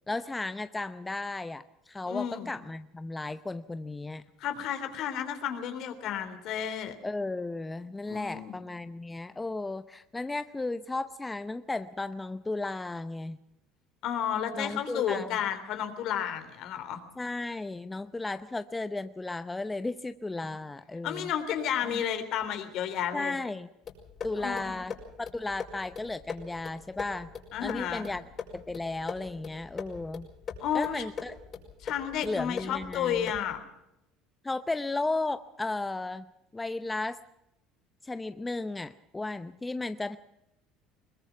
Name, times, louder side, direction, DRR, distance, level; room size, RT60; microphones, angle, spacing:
voice 1, 0.1-4.2 7.0-13.4 14.5-15.4 17.2-21.3 21.8-21.9 23.1-23.7 24.2-27.3 27.6-28.2 28.5-30.3 30.7-31.3 32.2-33.3 34.4-37.2 38.0-40.2, left 2 dB, 15° left, 12 dB, 0.7 m, -34 dB
voice 2, 2.1-2.5 4.4-6.9 8.1-8.5 14.0-17.0 21.0-23.3 24.4-24.7 27.5-28.1 30.6-31.1 31.8-33.6, left 9 dB, 60° left, 9 dB, 3.2 m, -32 dB
sound 1, 23.8-33.6, left 6 dB, 40° left, 5.2 m, -42 dB
22.0 x 20.0 x 5.9 m, 0.87 s
supercardioid pair, 95°, 0 cm